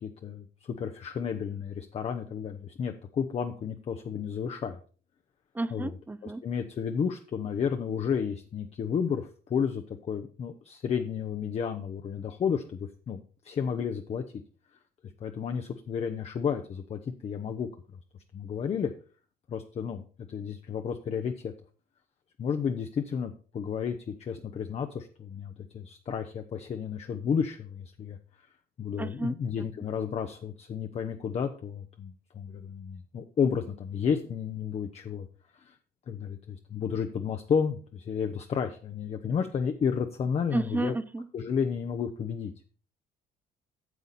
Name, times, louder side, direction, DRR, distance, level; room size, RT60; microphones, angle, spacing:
voice 1, 0.0-4.8 5.7-5.9 6.2-13.2 13.4-14.2 15.2-17.7 18.3-18.9 19.5-21.5 22.4-28.2 28.8-35.3 35.5-35.7 36.1-40.9 41.3-42.5, left 7 dB, 40° left, 6 dB, 0.8 m, -32 dB
voice 2, 5.5-6.4 29.0-29.7 40.5-41.3, right 2 dB, 10° right, 15 dB, 0.5 m, -32 dB
9.2 x 7.0 x 4.1 m, 0.39 s
cardioid pair, 110°, 17 cm